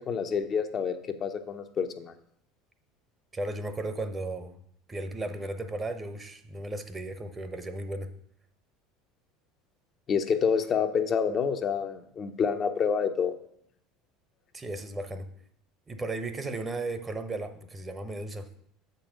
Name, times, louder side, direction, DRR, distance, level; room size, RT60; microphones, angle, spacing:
voice 1, 0.0-2.1 10.1-13.3, left 6 dB, 40° left, 6 dB, 0.7 m, -28 dB
voice 2, 3.3-4.6 4.9-8.1 14.5-15.3 15.9-18.5, right 2 dB, 20° right, 9 dB, 0.9 m, -35 dB
7.1 x 5.3 x 5.1 m, 0.68 s
figure-of-eight pair, 70°, 0 cm